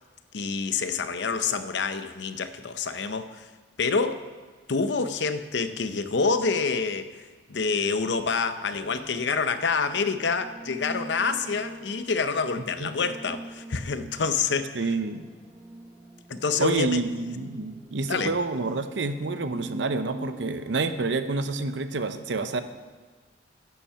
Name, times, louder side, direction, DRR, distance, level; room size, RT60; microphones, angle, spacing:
voice 1, 0.3-3.5 3.8-4.3 4.7-7.1 7.5-14.8 16.3-17.0 18.0-18.3, left 5 dB, 75° left, 10 dB, 0.7 m, -27 dB
sound 1, 8.7-20.9, right 1 dB, 20° right, 0.9 m, -44 dB
voice 2, 14.7-15.3 16.6-22.6, right 3 dB, 80° right, 10 dB, 0.7 m, -28 dB
10.5 x 7.2 x 5.8 m, 1.5 s
head